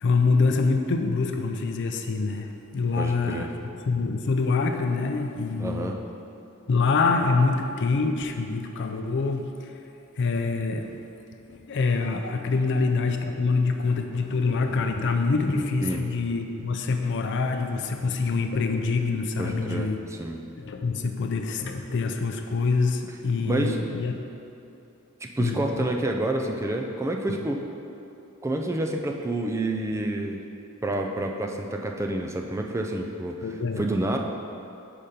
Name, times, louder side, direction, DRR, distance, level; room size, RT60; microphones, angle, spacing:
voice 1, 0.0-3.5 3.9-5.9 6.7-9.7 10.2-10.9 11.5-20.0 20.6-24.1 25.4-25.9 33.4-33.8, left 4 dB, 60° left, 5 dB, 0.4 m, -25 dB
voice 2, 3.0-3.5 5.6-6.0 15.8-16.1 19.4-20.4 23.4-23.8 25.2-27.6 28.4-30.4 30.8-33.5 33.8-34.2, right 1 dB, 15° right, 2 dB, 0.3 m, -28 dB
5.1 x 5.0 x 4.3 m, 2.7 s
head